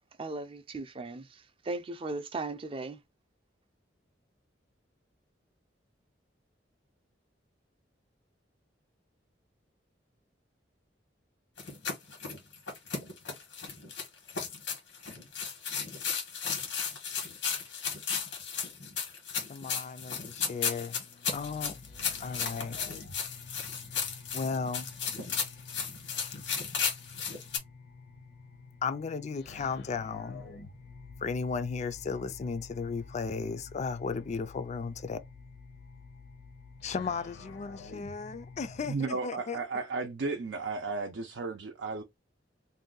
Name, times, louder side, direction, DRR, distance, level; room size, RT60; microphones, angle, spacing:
voice 1, 0.2-3.0, right 3 dB, 30° right, 0.5 m, -37 dB
sound 1, 11.6-27.6, left 6 dB, 85° left, 1.3 m, -35 dB
voice 2, 19.4-21.8 22.2-22.8 24.3-24.9 28.8-30.5 31.2-35.2 36.8-39.6, left 5 dB, 40° left, 0.4 m, -35 dB
sound 2, 21.3-39.0, left 4 dB, 65° left, 0.7 m, -49 dB
voice 3, 38.8-42.0, right 4 dB, 80° right, 0.5 m, -34 dB
2.7 x 2.2 x 3.7 m
head